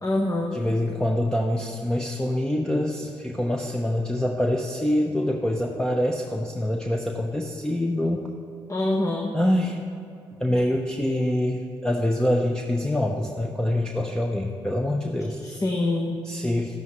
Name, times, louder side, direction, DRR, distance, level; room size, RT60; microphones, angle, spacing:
voice 1, 0.0-0.6 8.7-9.3 15.4-16.2, left 2 dB, 25° left, 1 dB, 1.1 m, -25 dB
voice 2, 0.5-8.3 9.3-9.8 10.4-15.4 16.2-16.8, left 1 dB, 5° left, 1 dB, 0.9 m, -25 dB
12.0 x 11.0 x 3.2 m, 2.6 s
hypercardioid pair, 40°, 12 cm